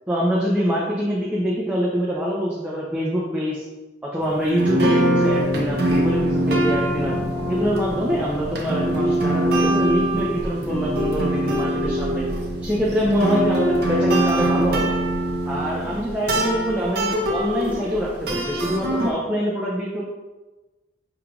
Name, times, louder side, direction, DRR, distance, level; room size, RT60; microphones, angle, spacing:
voice 1, 0.1-3.6 4.0-7.2 7.5-12.2 12.6-15.0 15.5-20.0, equal, 10° right, -6 dB, 0.5 m, -24 dB
sound 1, 4.2-4.3 4.6-19.1, right 1 dB, 55° right, 0.6 m, -23 dB
4.9 x 3.2 x 2.4 m, 1.1 s
head